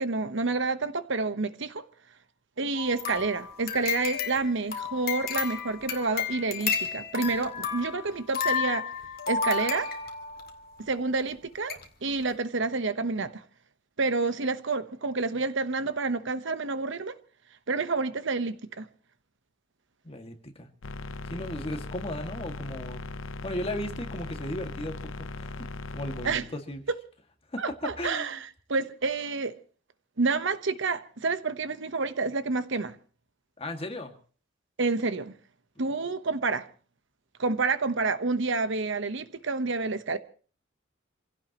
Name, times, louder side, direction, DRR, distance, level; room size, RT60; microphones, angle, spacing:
voice 1, 0.0-1.8 2.6-8.9 9.3-9.9 10.8-13.4 14.0-17.2 17.7-18.9 26.2-26.4 26.9-27.0 27.6-29.5 30.2-32.9 34.8-35.3 35.8-36.7 37.4-40.2, right 3 dB, 65° right, 1.1 m, -29 dB
sound 1, 2.7-10.5 11.2-11.3 11.7-11.8 12.2-12.3, left 6 dB, 50° left, 2.2 m, -32 dB
voice 2, 20.0-20.7 21.3-23.0 23.4-26.8 27.5-28.4 33.6-34.1, left 1 dB, 30° left, 2.1 m, -36 dB
sound 2, 20.8-26.4, left 2 dB, 75° left, 0.8 m, -38 dB
27.5 x 16.5 x 3.0 m
head